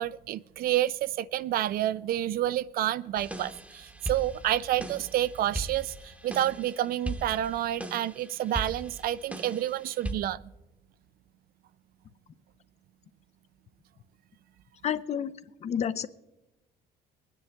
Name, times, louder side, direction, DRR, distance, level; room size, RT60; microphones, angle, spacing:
voice 1, 0.0-10.4, right 12 dB, 60° right, 18 dB, 0.4 m, -29 dB
sound 1, 3.2-10.1, right 1 dB, 10° right, 1.0 m, -39 dB
voice 2, 14.8-15.3 15.6-16.1, left 8 dB, 40° left, 14 dB, 0.5 m, -29 dB
21.0 x 10.0 x 3.3 m, 1.0 s
cardioid pair, 110°, 17 cm